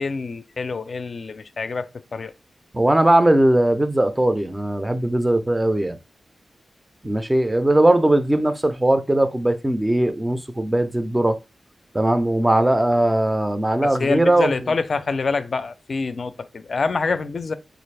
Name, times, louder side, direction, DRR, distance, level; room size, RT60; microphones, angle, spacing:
voice 1, 0.0-2.3 13.8-17.5, left 4 dB, 55° left, 0.4 m, -26 dB
voice 2, 2.7-6.0 7.0-11.4 11.9-14.7, right 1 dB, 15° right, 0.4 m, -19 dB
3.9 x 2.4 x 3.2 m
wide cardioid pair, 100°, 0 cm